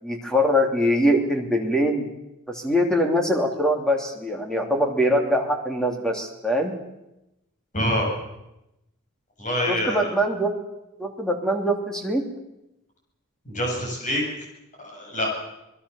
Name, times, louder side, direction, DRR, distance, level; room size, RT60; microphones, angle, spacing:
voice 1, 0.0-2.1 2.5-6.7 9.7-10.5 11.0-12.3, equal, 5° left, 3 dB, 3.1 m, -23 dB
voice 2, 7.7-8.1 9.4-10.1 13.5-14.2 14.8-15.3, equal, 35° left, 0 dB, 7.9 m, -25 dB
26.5 x 20.5 x 7.2 m, 0.92 s
head